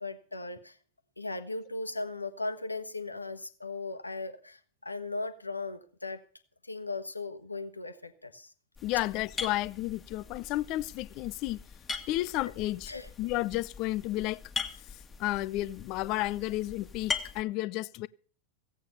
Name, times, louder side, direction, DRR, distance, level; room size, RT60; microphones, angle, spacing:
voice 1, 0.0-0.8 1.2-6.2 6.6-8.5 12.9-13.1, left 3 dB, 85° left, 1.2 m, -37 dB
voice 2, 8.8-11.6 12.1-12.9 13.2-14.4 15.2-18.1, left 17 dB, 40° left, 0.6 m, -32 dB
sound 1, 8.8-17.4, left 5 dB, 15° left, 1.7 m, -41 dB
16.5 x 8.4 x 6.9 m
figure-of-eight pair, 90°, 0 cm